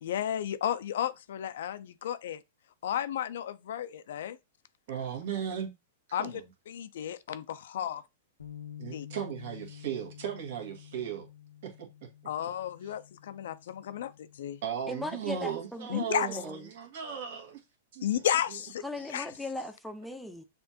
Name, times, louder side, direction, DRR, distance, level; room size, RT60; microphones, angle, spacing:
voice 1, 0.0-2.4 2.8-4.4 6.1-8.0 8.9-9.1 12.3-14.6 15.9-16.3 18.0-18.8 19.1-19.3, left 10 dB, 70° left, 0.4 m, -33 dB
voice 2, 4.9-5.7 6.2-6.4 8.8-11.3 11.6-11.9 14.6-17.6 17.9-18.3, right 9 dB, 60° right, 1.3 m, -36 dB
Bass guitar, 8.4-14.6, left 10 dB, 90° left, 0.8 m, -49 dB
voice 3, 14.9-16.1 16.4-16.6 18.8-20.4, left 2 dB, ahead, 0.6 m, -38 dB
6.7 x 2.5 x 2.7 m
hypercardioid pair, 115°, 0 cm